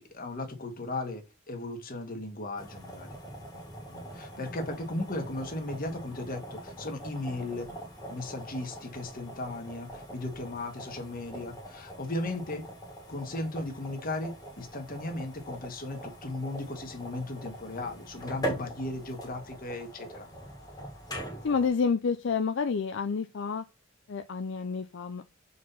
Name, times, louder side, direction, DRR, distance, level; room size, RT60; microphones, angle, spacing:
voice 1, 0.0-3.2 4.1-7.7 8.1-12.7 13.1-20.3, left 2 dB, 45° left, 1.5 m, -36 dB
sound 1, 2.6-21.7, right 1 dB, 20° left, 1.7 m, -42 dB
voice 2, 21.4-23.6 24.1-25.4, left 5 dB, 65° left, 0.5 m, -29 dB
4.7 x 4.2 x 5.5 m
head